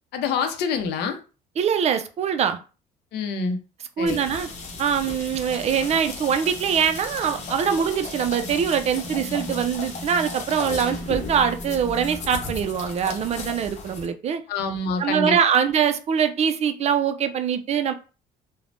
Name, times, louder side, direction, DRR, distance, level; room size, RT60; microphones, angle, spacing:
voice 1, 0.1-1.2 3.1-3.6 4.0-4.2 14.5-15.4, left 4 dB, 80° left, 7 dB, 0.6 m, -26 dB
voice 2, 1.6-2.6 4.0-4.5 4.8-14.4 15.0-17.9, right 7 dB, 40° right, 8 dB, 0.4 m, -23 dB
sound 1, 4.1-14.1, left 3 dB, 45° left, 0.8 m, -35 dB
3.2 x 2.1 x 2.5 m, 0.34 s
cardioid pair, 110°, 17 cm